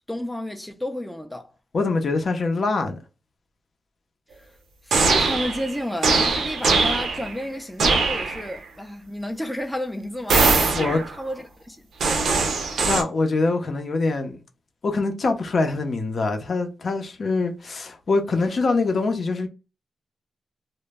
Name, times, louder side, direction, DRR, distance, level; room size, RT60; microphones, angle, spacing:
voice 1, 0.1-1.5 4.4-4.5 4.8-10.5 10.7-11.8, left 1 dB, 5° left, 0.4 m, -31 dB
voice 2, 1.7-3.0 10.7-11.0 12.8-14.4 14.8-19.5, left 3 dB, 55° left, 0.6 m, -24 dB
sound 1, 4.9-5.8 6.0-7.4 7.8-8.5 10.3-11.1 12.0-13.0, right 4 dB, 90° right, 0.6 m, -21 dB
2.1 x 2.0 x 3.3 m
cardioid pair, 95°, 0 cm